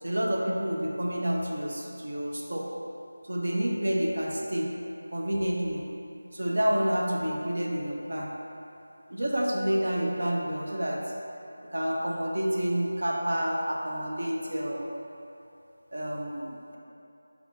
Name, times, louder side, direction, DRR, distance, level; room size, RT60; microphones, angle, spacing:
voice 1, 0.0-2.7 3.3-4.7 5.1-5.8 6.3-8.3 9.1-11.0 11.7-14.9 15.9-16.8, equal, 60° right, -2 dB, 0.6 m, -29 dB
5.0 x 2.4 x 3.6 m, 2.9 s
figure-of-eight pair, 165°, 0 cm